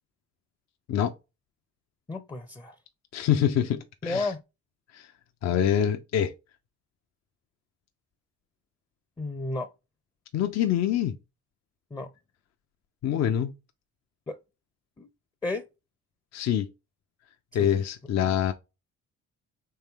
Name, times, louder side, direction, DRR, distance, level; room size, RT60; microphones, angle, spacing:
voice 1, 2.1-2.8 4.0-4.4 9.2-9.7 11.9-12.1 14.3-14.4 15.0-15.1 15.4-15.6 17.6-17.8 18.2-18.3, left 2 dB, 15° left, 0.5 m, -32 dB
voice 2, 3.1-4.3 4.9-5.1 5.4-6.3 10.3-11.1 13.0-13.5 16.3-16.7 17.5-18.5, left 9 dB, 60° left, 0.6 m, -25 dB
4.4 x 3.3 x 3.6 m
cardioid pair, 90°, 30 cm